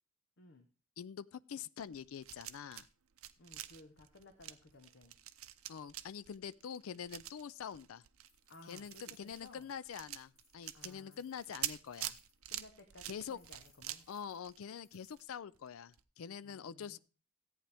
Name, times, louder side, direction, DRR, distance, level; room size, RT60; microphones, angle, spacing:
voice 1, 1.0-2.9 5.7-8.0 8.7-12.2 13.1-13.4 14.1-17.0, left 7 dB, 75° left, 0.4 m, -45 dB
sound 1, 1.8-2.9 3.1-15.2 15.5-15.7 15.9-16.0, right 13 dB, 80° right, 0.6 m, -46 dB
voice 2, 3.4-5.2 8.5-9.7 10.7-11.2 12.5-14.1 16.4-17.0, left 2 dB, 60° left, 1.0 m, -58 dB
sound 2, 8.3-12.4 13.2-15.3, left 3 dB, 30° left, 3.0 m, -69 dB
14.0 x 8.8 x 3.4 m
head